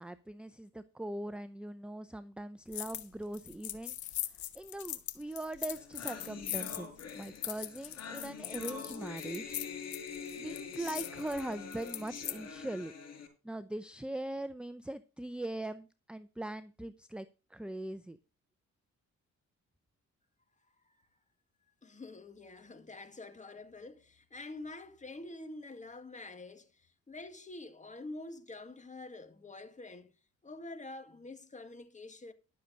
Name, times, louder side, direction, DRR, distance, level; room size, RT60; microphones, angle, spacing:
voice 1, 0.0-4.0 4.5-6.9 7.1-9.4 10.4-12.9 13.4-17.3 17.5-18.2, right 1 dB, 5° right, 0.6 m, -41 dB
sound 1, 2.7-3.1 3.3-12.4, left 12 dB, 75° left, 1.3 m, -41 dB
sound 2, 5.4-5.5 5.7-13.3, left 6 dB, 60° left, 5.2 m, -45 dB
voice 2, 21.8-30.1 30.4-32.3, left 2 dB, 25° left, 2.0 m, -47 dB
12.5 x 6.9 x 5.2 m
cardioid pair, 90°, 30 cm